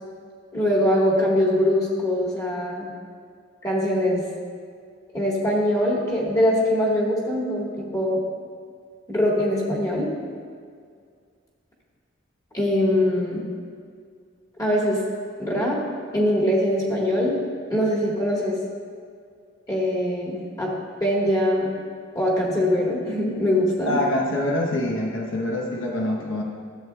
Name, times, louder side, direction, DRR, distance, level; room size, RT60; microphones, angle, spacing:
voice 1, 0.5-2.9 3.6-4.2 5.1-8.2 9.1-10.1 12.5-13.4 14.6-15.0 15.4-15.8 16.1-17.4 17.7-18.6 19.7-20.7 21.0-21.8 22.1-24.0, left 1 dB, 20° left, -4 dB, 1.5 m, -22 dB
voice 2, 23.9-26.4, left 1 dB, 85° left, -1 dB, 1.0 m, -25 dB
12.5 x 7.8 x 2.3 m, 2.1 s
head